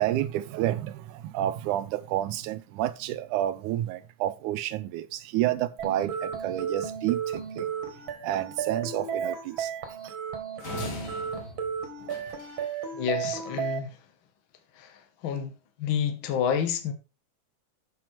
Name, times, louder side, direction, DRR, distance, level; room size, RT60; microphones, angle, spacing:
voice 1, 0.0-7.7 8.2-9.7 10.0-10.1, right 13 dB, 80° right, 2.0 m, -30 dB
sound 1, 5.8-13.8, right 7 dB, 50° right, 1.6 m, -33 dB
sound 2, 10.6-12.8, left 3 dB, 50° left, 1.3 m, -40 dB
voice 2, 12.9-14.0 14.7-15.5 15.8-16.9, left 8 dB, 75° left, 1.1 m, -29 dB
7.6 x 6.0 x 4.4 m
omnidirectional pair, 3.7 m